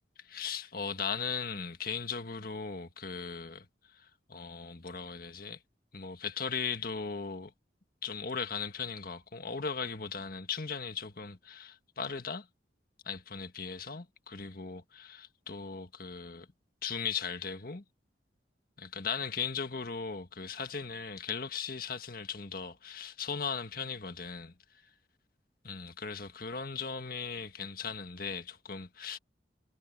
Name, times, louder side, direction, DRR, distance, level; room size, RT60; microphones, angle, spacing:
voice 1, 0.2-3.7 3.9-5.6 5.9-7.5 8.0-12.5 13.0-16.5 16.8-17.8 18.8-24.5 25.6-29.2, left 5 dB, 50° left, 1.7 m, -38 dB
head